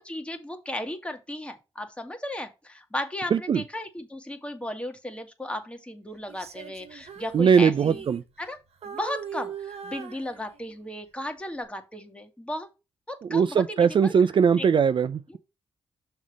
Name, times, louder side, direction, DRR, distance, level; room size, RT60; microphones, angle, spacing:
voice 1, 0.0-8.1 8.4-8.6 8.8-12.7 13.1-14.1 14.5-14.7 15.3-15.4, left 1 dB, 10° left, 1.8 m, -35 dB
voice 2, 3.3-3.6 7.3-8.2 13.3-15.4, right 6 dB, 50° right, 0.4 m, -20 dB
Female singing, 6.3-8.6 8.8-10.9 11.4-11.6, right 7 dB, 75° right, 1.1 m, -40 dB
6.4 x 3.5 x 5.9 m
cardioid pair, 80°, 11 cm